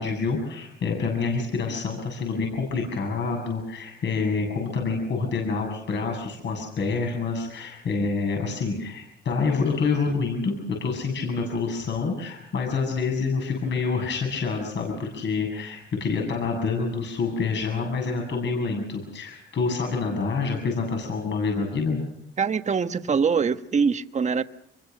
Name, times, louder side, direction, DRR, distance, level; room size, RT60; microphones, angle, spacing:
voice 1, 0.0-22.0, left 4 dB, 65° left, 7.3 m, -27 dB
voice 2, 22.4-24.4, right 5 dB, 35° right, 1.2 m, -23 dB
27.0 x 22.5 x 6.6 m
cardioid pair, 90°, 20 cm